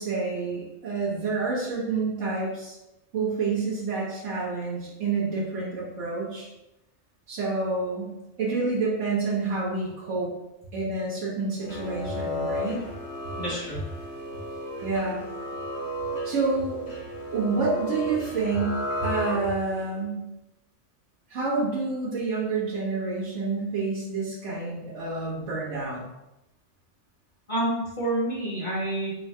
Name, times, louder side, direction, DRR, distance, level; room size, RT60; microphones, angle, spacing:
voice 1, 0.0-2.8 3.1-6.5 7.3-8.1 8.4-10.3 10.7-12.8 14.8-15.2 16.2-16.8 17.3-20.2 21.3-26.0, right 3 dB, 70° right, -9 dB, 1.5 m, -28 dB
sound 1, 11.6-19.8, equal, 55° left, 1.1 m, -33 dB
voice 2, 13.4-13.8 27.5-29.2, right 1 dB, 40° left, -6 dB, 1.4 m, -28 dB
3.8 x 2.4 x 4.2 m, 0.92 s
omnidirectional pair, 1.3 m